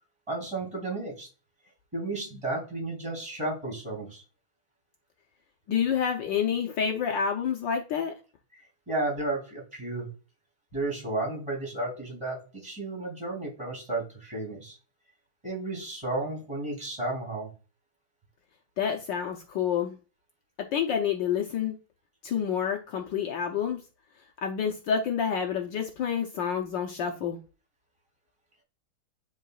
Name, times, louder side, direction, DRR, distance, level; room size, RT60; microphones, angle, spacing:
voice 1, 0.3-1.3 1.9-4.2 8.5-10.1 10.7-14.8 15.4-17.5, right 2 dB, 15° right, 3.2 m, -33 dB
voice 2, 5.7-8.2 18.8-20.0 20.7-21.8 22.2-23.8 24.4-27.4, left 7 dB, 70° left, 1.4 m, -28 dB
10.5 x 4.0 x 2.3 m
omnidirectional pair, 2.3 m